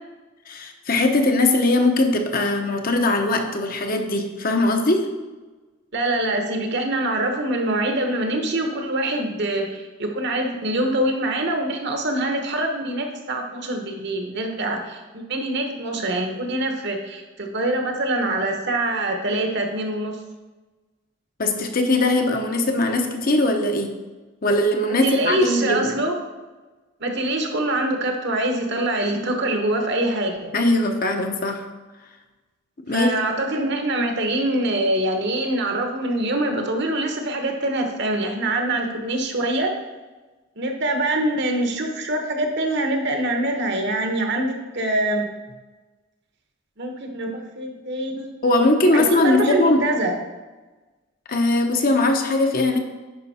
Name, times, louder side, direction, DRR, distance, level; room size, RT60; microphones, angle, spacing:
voice 1, 0.5-5.1 21.4-24.0 24.4-26.0 29.1-29.2 30.5-31.7 32.9-33.2 48.4-49.9 51.3-52.8, left 2 dB, 45° left, 4 dB, 0.9 m, -20 dB
voice 2, 5.9-20.2 25.0-26.2 27.0-30.5 32.9-39.7 40.6-45.3 46.8-48.3 48.9-50.1, right 1 dB, 60° right, 3 dB, 1.2 m, -24 dB
10.0 x 5.2 x 4.3 m, 1.2 s
head